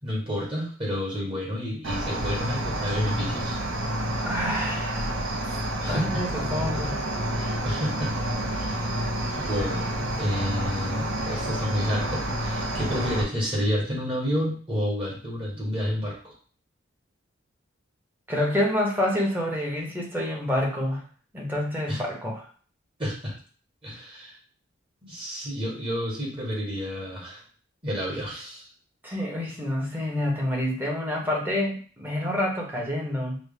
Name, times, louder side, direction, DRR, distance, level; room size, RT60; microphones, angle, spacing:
voice 1, 0.0-3.6 5.8-6.2 7.3-8.1 8.5-9.0 9.3-9.9 10.2-16.3 21.9-22.0 23.0-23.3 23.8-24.4 25.0-27.4 27.8-28.6, equal, 25° right, -5 dB, 1.5 m, -30 dB
Cricket, 1.8-13.2, right 1 dB, 80° right, 1.3 m, -29 dB
voice 2, 4.2-5.2 5.9-7.0 18.3-21.0 21.3-22.4 29.0-33.4, left 1 dB, 10° right, -2 dB, 1.1 m, -28 dB
6.2 x 2.1 x 3.5 m, 0.42 s
head